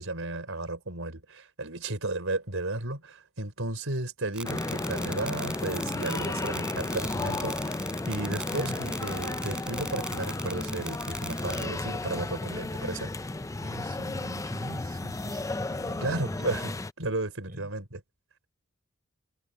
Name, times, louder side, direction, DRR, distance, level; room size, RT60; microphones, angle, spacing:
voice 1, 0.0-7.8 8.1-13.1 16.0-18.0, right 2 dB, 65° right, 5.2 m, -34 dB
sound 1, 4.3-11.7, right 1 dB, 5° right, 7.0 m, -37 dB
sound 2, 4.4-16.9, left 2 dB, 15° left, 0.5 m, -33 dB
voice 2, 13.3-16.5 17.5-17.7, equal, 45° right, 6.2 m, -41 dB
head